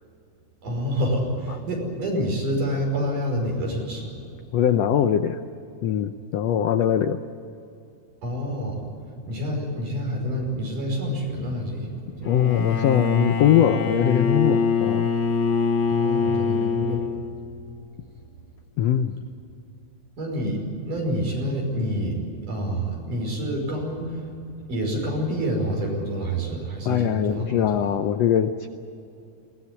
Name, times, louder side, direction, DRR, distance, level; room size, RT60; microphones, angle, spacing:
voice 1, 0.6-4.1 8.2-8.8 9.3-12.3 15.9-17.0 20.2-22.2 22.5-24.2 24.7-27.7, equal, 70° right, 0 dB, 7.0 m, -27 dB
voice 2, 4.5-5.4 5.8-7.2 12.2-15.1 18.8-19.2 26.8-28.7, left 9 dB, 75° left, 8 dB, 1.5 m, -21 dB
Bowed string instrument, 12.2-17.5, left 5 dB, 50° left, 1.5 m, -24 dB
22.0 x 18.0 x 9.6 m, 2.7 s
omnidirectional pair, 3.8 m